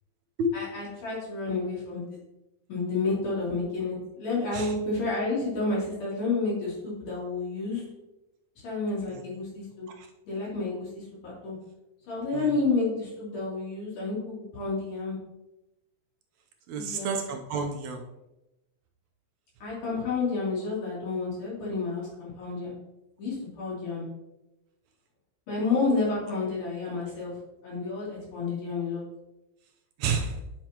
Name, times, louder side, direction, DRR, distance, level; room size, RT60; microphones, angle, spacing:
voice 1, 0.5-2.2 2.7-7.8 8.6-9.9 10.2-11.6 12.1-15.2 16.7-17.1 19.6-22.7 23.2-24.1 25.5-27.4 27.6-29.0, left 3 dB, 80° left, -6 dB, 4.6 m, -30 dB
voice 2, 16.7-18.0 30.0-30.4, right 3 dB, 75° right, 3 dB, 1.9 m, -30 dB
10.5 x 5.6 x 2.9 m, 0.93 s
omnidirectional pair, 3.5 m